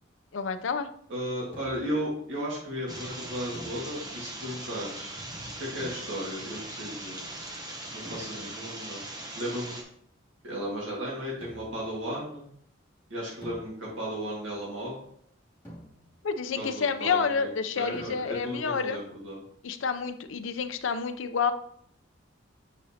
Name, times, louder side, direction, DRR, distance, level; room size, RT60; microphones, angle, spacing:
voice 1, 0.3-0.9 16.2-19.0 19.6-21.5, left 5 dB, 80° left, 9 dB, 0.5 m, -29 dB
voice 2, 1.1-5.2 5.6-7.2 7.9-9.0 9.3-9.7 10.4-12.4 13.1-15.0 16.6-17.5 17.8-19.4, equal, 80° right, -5 dB, 1.8 m, -35 dB
sound 1, 1.5-2.1 3.5-4.4 5.8-6.5 8.1-8.8 11.4-12.0 13.4-14.3 15.6-16.4 17.9-18.6, equal, 10° left, 2.3 m, -49 dB
sound 2, 2.9-9.8, right 1 dB, 20° right, 0.8 m, -40 dB
7.2 x 5.0 x 2.8 m, 0.67 s
head